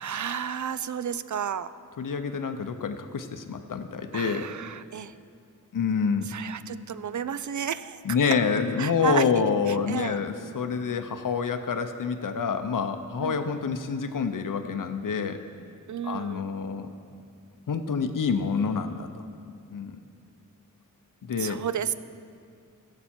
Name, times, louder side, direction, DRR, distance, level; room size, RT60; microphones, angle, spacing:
voice 1, 0.0-1.7 4.1-5.1 6.3-8.3 8.8-9.2 9.9-10.2 13.2-13.3 15.9-16.5 21.4-22.0, right 8 dB, 60° right, 14 dB, 0.4 m, -32 dB
voice 2, 2.0-4.5 5.7-6.3 8.0-15.7 16.0-16.9 17.7-19.1 19.7-20.0 21.3-21.6, left 5 dB, 75° left, 8 dB, 0.6 m, -27 dB
17.0 x 6.9 x 4.3 m, 2.3 s
wide cardioid pair, 65°, 33 cm